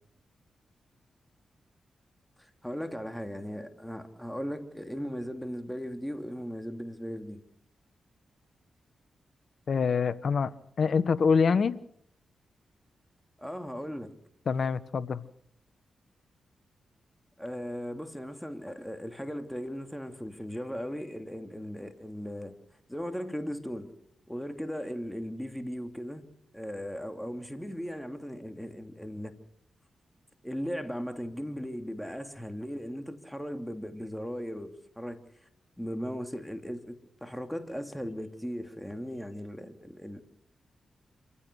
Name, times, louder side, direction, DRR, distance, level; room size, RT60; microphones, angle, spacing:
voice 1, 2.4-7.4 13.4-14.1 17.4-22.6 22.9-23.9 24.3-26.3 26.5-29.4 30.4-35.2 35.8-40.2, equal, 5° left, 3.1 m, -37 dB
voice 2, 9.7-10.5 10.8-11.8 14.5-15.2, left 5 dB, 65° left, 1.1 m, -25 dB
27.0 x 15.5 x 6.3 m
supercardioid pair, 45°, 0 cm